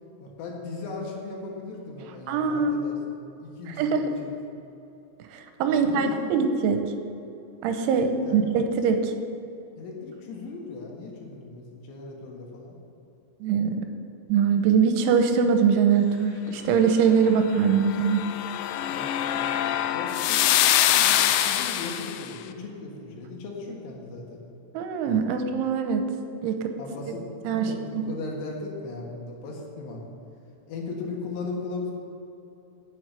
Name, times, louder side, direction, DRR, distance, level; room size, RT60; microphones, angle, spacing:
voice 1, 0.2-3.0 3.4-4.4 5.7-6.2 8.0-8.4 9.8-12.8 17.3-17.4 18.8-19.5 19.8-24.4 26.8-30.0 30.7-31.9, left 3 dB, 65° left, -2 dB, 3.5 m, -37 dB
voice 2, 2.3-2.7 3.8-4.1 5.2-6.8 7.6-9.1 13.4-13.9 14.3-18.2 24.7-26.0 26.4-26.7 27.4-28.1, right 6 dB, 80° right, 6 dB, 3.0 m, -23 dB
sound 1, 17.6-22.3, left 12 dB, 85° left, 2.8 m, -24 dB
9.8 x 7.4 x 8.1 m, 2.9 s
omnidirectional pair, 5.9 m